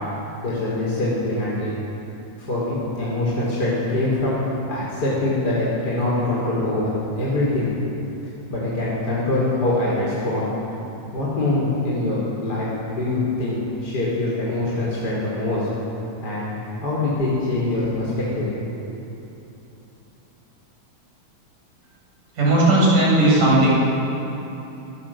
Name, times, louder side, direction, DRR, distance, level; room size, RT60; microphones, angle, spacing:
voice 1, 0.4-1.7 2.4-4.3 4.7-7.7 8.5-10.5 11.1-15.7 16.2-18.9, left 2 dB, 30° left, -7 dB, 5.7 m, -24 dB
voice 2, 22.4-23.7, right 1 dB, 70° right, -5 dB, 9.5 m, -16 dB
28.0 x 20.0 x 7.9 m, 3.0 s
omnidirectional pair, 3.7 m